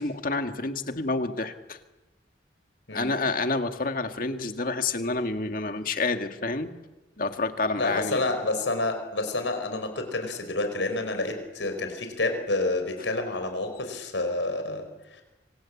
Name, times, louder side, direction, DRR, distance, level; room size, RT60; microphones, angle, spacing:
voice 1, 0.0-1.8 2.9-6.7 7.2-8.2, left 3 dB, 50° left, 7 dB, 1.9 m, -28 dB
voice 2, 7.8-15.2, left 2 dB, 85° left, 6 dB, 5.1 m, -29 dB
26.0 x 25.5 x 8.5 m, 1.1 s
head